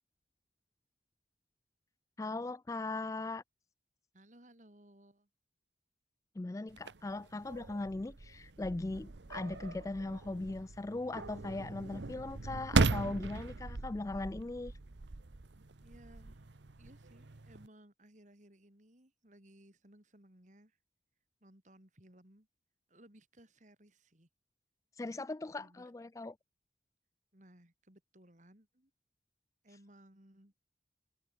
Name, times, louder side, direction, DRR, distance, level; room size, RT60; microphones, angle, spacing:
voice 1, 2.2-3.4 6.4-14.7 25.0-26.4, left 2 dB, 15° left, 0.3 m, -39 dB
voice 2, 4.1-5.3 15.8-16.5 16.8-20.8 21.4-22.5 22.9-24.3 25.6-25.9 27.3-28.9 29.6-30.5, right 1 dB, 40° right, 3.6 m, -61 dB
sound 1, 6.7-17.7, right 3 dB, 80° right, 1.0 m, -38 dB
head